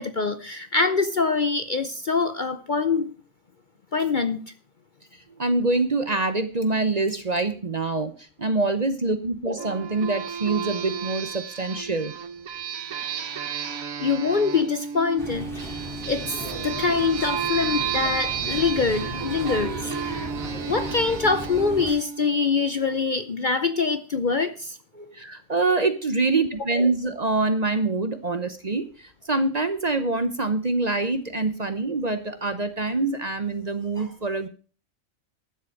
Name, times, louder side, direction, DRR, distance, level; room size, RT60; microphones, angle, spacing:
voice 1, 0.0-3.1 3.9-4.4 14.0-15.5 16.1-20.3 20.7-24.8, left 4 dB, 45° left, 10 dB, 0.7 m, -24 dB
voice 2, 5.4-12.1 24.9-34.5, right 3 dB, 35° right, 10 dB, 0.9 m, -25 dB
sound 1, 9.6-22.8, right 7 dB, 80° right, 1.4 m, -32 dB
sound 2, 15.2-21.9, equal, ahead, 3.6 m, -36 dB
12.0 x 7.3 x 6.4 m, 0.38 s
omnidirectional pair, 1.4 m